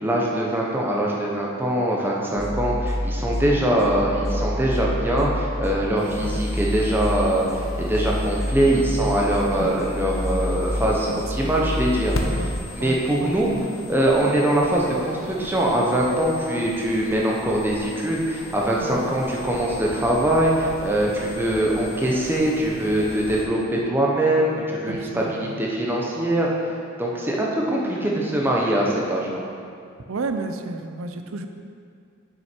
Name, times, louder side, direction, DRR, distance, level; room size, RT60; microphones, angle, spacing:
voice 1, 0.0-7.5 7.8-12.2 12.8-13.5 13.9-26.5 27.0-29.4, right 1 dB, 10° right, -3 dB, 0.8 m, -22 dB
sound 1, 2.4-12.6, left 1 dB, 15° left, 0.4 m, -28 dB
sound 2, 6.0-23.4, left 1 dB, 80° left, 0.7 m, -38 dB
voice 2, 12.8-13.3 18.8-19.1 24.9-25.6 30.1-31.5, right 3 dB, 75° right, 7 dB, 0.5 m, -32 dB
6.4 x 6.1 x 4.4 m, 2.4 s
head